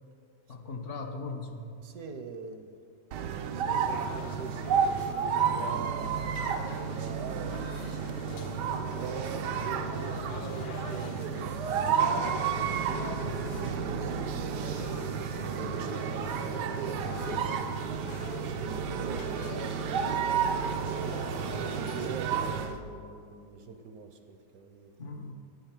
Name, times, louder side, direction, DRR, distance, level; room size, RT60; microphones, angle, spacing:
voice 1, 0.5-1.7 12.9-13.5 25.0-25.3, left 3 dB, 55° left, 5 dB, 1.0 m, -39 dB
voice 2, 1.8-2.7 3.5-8.5 9.0-12.5 13.7-15.1 15.6-17.9 18.4-20.4 20.8-21.1 21.4-25.3, right 5 dB, 70° right, 6 dB, 1.1 m, -44 dB
sound 1, 3.1-22.8, right 6 dB, 85° right, 1.2 m, -31 dB
sound 2, 3.9-22.2, left 4 dB, 85° left, 0.4 m, -45 dB
9.1 x 8.1 x 5.9 m, 2.4 s
omnidirectional pair, 1.8 m